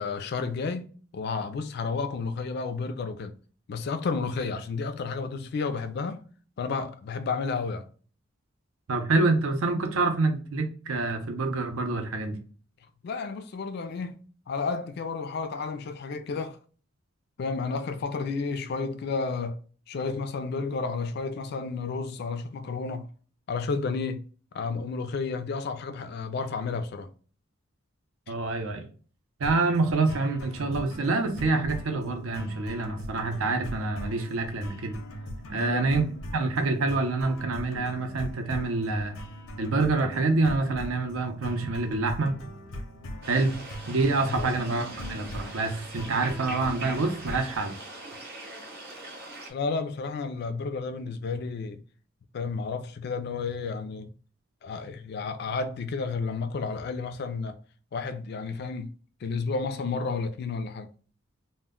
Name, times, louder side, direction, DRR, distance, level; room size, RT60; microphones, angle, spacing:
voice 1, 0.0-3.4 3.7-6.2 6.6-7.9 13.0-16.6 17.4-19.6 19.9-23.1 23.5-24.2 24.5-27.1 35.5-35.9 44.3-44.5 49.5-51.8 52.3-54.1 54.6-57.6 57.9-58.9 59.2-60.9, left 4 dB, 50° left, 0.3 m, -31 dB
voice 2, 8.9-12.4 28.3-28.8 29.4-35.0 35.5-36.0 36.3-39.2 39.6-42.3 43.3-43.5 43.9-47.7, right 3 dB, 80° right, 0.5 m, -26 dB
sound 1, 29.4-47.6, equal, 90° left, 0.6 m, -40 dB
sound 2, 43.2-49.5, right 2 dB, 50° right, 0.7 m, -42 dB
2.1 x 2.1 x 3.5 m
head